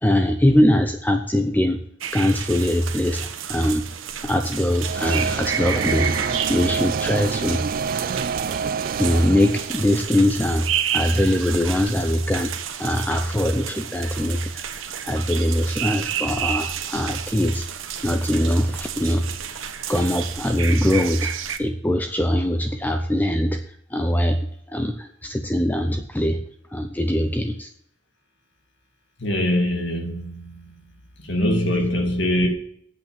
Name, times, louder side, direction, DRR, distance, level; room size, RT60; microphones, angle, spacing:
voice 1, 0.0-1.8 2.1-3.9 4.2-7.6 9.0-12.5 12.8-14.7 15.0-17.7 18.0-19.2 19.9-21.3 21.6-23.7 23.9-26.4 26.7-27.7, left 1 dB, 10° left, 7 dB, 0.6 m, -22 dB
sound 1, 2.0-21.6, right 9 dB, 90° right, 1.1 m, -31 dB
sound 2, 4.8-10.0, right 5 dB, 45° right, 0.4 m, -27 dB
voice 2, 29.2-31.0 31.2-32.5, left 1 dB, 65° left, 3 dB, 2.4 m, -23 dB
8.3 x 8.2 x 8.8 m, 0.70 s
head